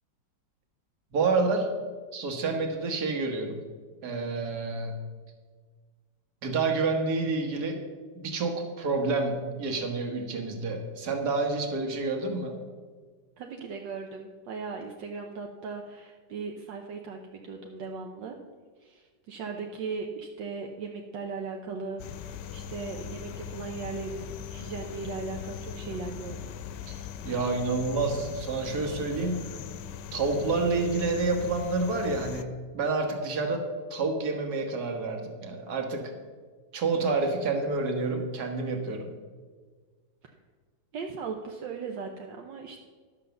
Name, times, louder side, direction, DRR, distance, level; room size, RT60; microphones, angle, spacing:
voice 1, 1.1-1.8 2.1-3.6 4.0-5.0 6.4-7.8 8.2-12.6 26.9-29.4 30.1-36.1 36.7-39.1, right 3 dB, 60° right, 4 dB, 1.8 m, -29 dB
voice 2, 13.4-18.4 18.8-26.5 40.2-40.4 40.9-42.8, right 4 dB, 75° right, 2 dB, 1.5 m, -38 dB
sound 1, 22.0-32.4, left 9 dB, 75° left, 1.2 m, -40 dB
11.5 x 6.3 x 6.7 m, 1.5 s
omnidirectional pair, 2.1 m